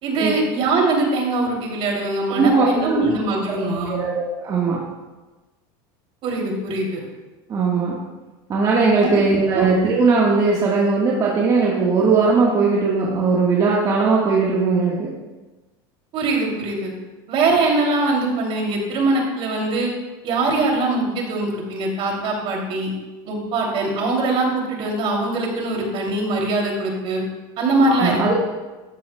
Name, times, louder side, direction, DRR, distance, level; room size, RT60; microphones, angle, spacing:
voice 1, 0.0-4.0 6.2-7.0 9.0-9.1 9.5-9.7 16.1-16.9 17.3-19.9 20.2-22.9 23.3-27.2 27.6-28.3, right 2 dB, 50° right, 0 dB, 2.7 m, -22 dB
voice 2, 2.4-3.0 3.5-4.9 7.5-8.1 8.5-15.1 27.9-28.3, right 4 dB, 30° right, -4 dB, 1.4 m, -19 dB
13.0 x 9.6 x 2.2 m, 1.2 s
supercardioid pair, 125°, 12 cm